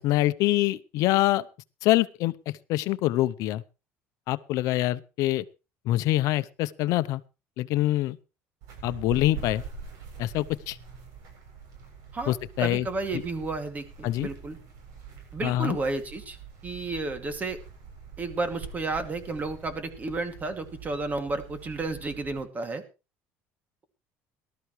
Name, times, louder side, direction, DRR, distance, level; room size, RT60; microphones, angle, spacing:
voice 1, 0.0-1.4 1.8-2.3 2.7-3.6 4.3-5.4 5.9-7.2 7.6-8.2 8.8-9.6 10.2-10.8 12.3-12.9 14.0-14.3 15.4-15.8, left 16 dB, 70° left, 16 dB, 0.7 m, -25 dB
sound 1, 8.6-22.4, right 6 dB, 70° right, 7.7 m, -44 dB
voice 2, 12.1-14.6 15.3-16.4 16.6-17.6 18.2-22.8, right 3 dB, 25° right, 8 dB, 2.4 m, -32 dB
19.0 x 13.0 x 3.2 m, 0.31 s
cardioid pair, 110°, 6 cm